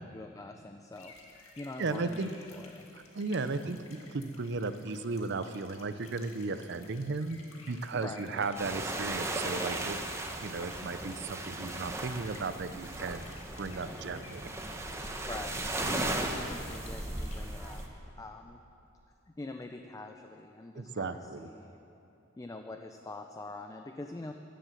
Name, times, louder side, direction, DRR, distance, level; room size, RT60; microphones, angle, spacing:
voice 1, 0.0-2.9 7.9-8.5 15.3-17.8 18.2-18.6 19.3-21.1 21.4-21.8 22.4-24.3, left 2 dB, 15° left, 5 dB, 0.4 m, -44 dB
sound 1, 0.9-17.8, left 3 dB, 85° left, 1.8 m, -56 dB
voice 2, 1.8-2.3 2.9-7.4 7.7-10.0 10.4-13.2 13.6-14.5 20.7-21.5, right 3 dB, 60° right, 12 dB, 0.6 m, -35 dB
sound 2, 8.5-17.9, right 1 dB, 15° right, 0.9 m, -36 dB
15.0 x 10.5 x 6.5 m, 2.8 s
head